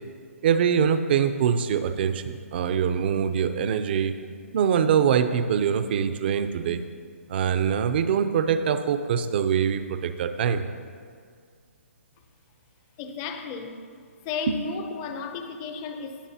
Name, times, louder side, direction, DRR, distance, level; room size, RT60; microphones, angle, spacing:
voice 1, 0.4-4.1 4.5-6.8 7.3-10.6 14.5-14.6, right 7 dB, 40° right, 9 dB, 0.6 m, -23 dB
voice 2, 13.0-13.8 14.2-16.3, left 5 dB, 25° left, 7 dB, 0.6 m, -33 dB
17.5 x 7.2 x 2.8 m, 2.1 s
hypercardioid pair, 150°, 8 cm